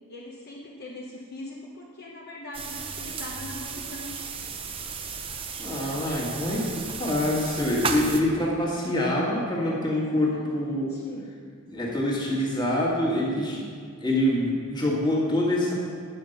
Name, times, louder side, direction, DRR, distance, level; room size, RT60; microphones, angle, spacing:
voice 1, 0.1-4.3 6.0-6.4 9.9-11.3, left 1 dB, 45° left, -3 dB, 0.9 m, -41 dB
sound 1, 2.5-8.2, right 5 dB, 25° right, 0.6 m, -34 dB
voice 2, 5.6-6.7 7.0-10.9 11.7-13.7 14.0-15.7, left 1 dB, 20° left, -5 dB, 1.8 m, -25 dB
9.5 x 5.3 x 6.6 m, 2.1 s
head